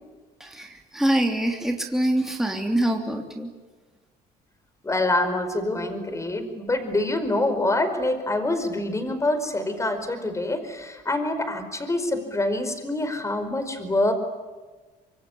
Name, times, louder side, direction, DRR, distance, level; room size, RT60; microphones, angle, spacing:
voice 1, 0.4-3.5, right 1 dB, ahead, 2 dB, 3.3 m, -25 dB
voice 2, 4.8-14.1, left 2 dB, 15° left, 9 dB, 4.9 m, -26 dB
25.5 x 23.5 x 9.9 m, 1.3 s
cardioid pair, 110°, 17 cm